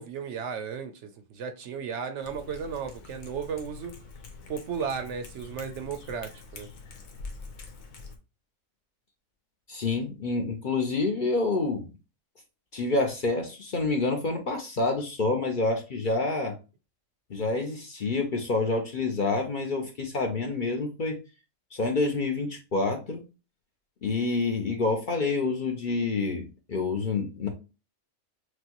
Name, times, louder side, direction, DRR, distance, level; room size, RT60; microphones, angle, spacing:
voice 1, 0.0-4.0 4.5-6.7, right 6 dB, 65° right, 0.8 m, -35 dB
Cat, 2.2-8.2, left 4 dB, 85° left, 1.3 m, -45 dB
voice 2, 9.7-11.9 12.7-16.5 17.3-21.2 21.7-23.2 24.0-27.5, left 3 dB, 45° left, 0.7 m, -28 dB
6.1 x 2.2 x 2.9 m
omnidirectional pair, 1.4 m